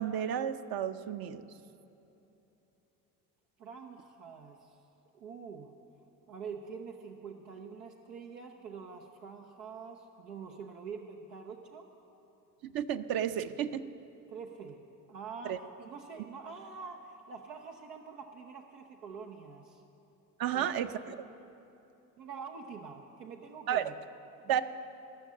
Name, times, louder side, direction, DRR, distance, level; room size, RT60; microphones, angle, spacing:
voice 1, 0.0-1.4 12.6-13.8 15.4-15.6 20.4-21.1 23.7-23.8 24.5-24.6, right 9 dB, 50° right, 10 dB, 0.7 m, -32 dB
voice 2, 3.6-4.8 5.1-5.7 6.3-11.9 14.3-14.8 15.1-19.8 20.5-20.7 22.2-23.9 24.4-24.6, right 5 dB, 85° right, 2 dB, 0.8 m, -45 dB
18.5 x 6.4 x 8.6 m, 2.9 s
hypercardioid pair, 60°, 48 cm